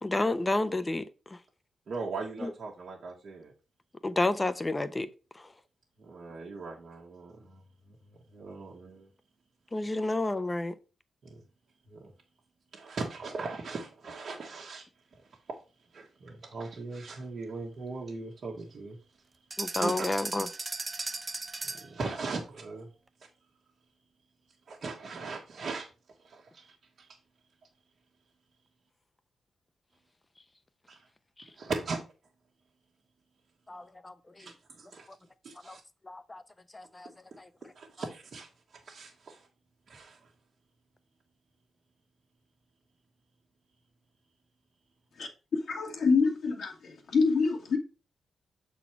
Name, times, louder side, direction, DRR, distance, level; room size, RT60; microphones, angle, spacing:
voice 1, 0.0-1.0 2.4-2.5 4.0-5.1 9.7-10.7 19.6-20.5 33.7-34.1 35.7-35.8 36.1-36.4 36.7-37.1, left 2 dB, 20° left, 0.7 m, -30 dB
voice 2, 1.9-3.5 6.0-9.1 11.2-11.4 11.9-12.1 12.7-19.2 19.7-20.1 21.6-22.9 24.7-25.9 26.2-27.2 30.9-31.1 31.5-32.0 34.4-35.1 35.4-35.8 37.0-39.5 39.9-40.3, right 4 dB, 55° right, 1.5 m, -40 dB
sound 1, 19.5-22.0, right 3 dB, 25° right, 0.5 m, -36 dB
voice 3, 45.7-47.8, left 4 dB, 70° left, 1.7 m, -26 dB
7.3 x 4.2 x 4.6 m
cardioid pair, 110°, 0 cm